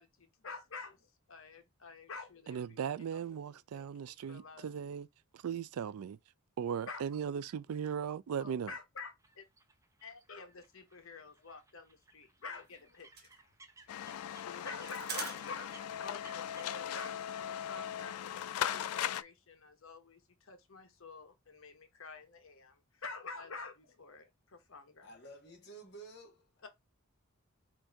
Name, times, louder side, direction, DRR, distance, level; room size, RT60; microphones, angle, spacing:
voice 1, 0.0-3.2 3.7-4.7 6.9-7.1 8.4-9.4 10.0-13.5 14.4-15.8 16.0-17.2 17.5-25.1 26.6-26.7, left 4 dB, 65° left, 1.0 m, -48 dB
voice 2, 2.5-5.1 5.3-6.2 6.6-8.7, right 7 dB, 80° right, 0.3 m, -38 dB
sound 1, 9.2-16.6, right 3 dB, 15° right, 0.6 m, -61 dB
sound 2, 12.5-16.1 16.5-16.7 17.0-18.1, right 5 dB, 45° right, 1.2 m, -46 dB
sound 3, 13.9-19.2, left 10 dB, 85° left, 0.3 m, -39 dB
voice 3, 25.0-26.7, right 2 dB, 50° left, 1.9 m, -52 dB
4.4 x 2.6 x 4.6 m
head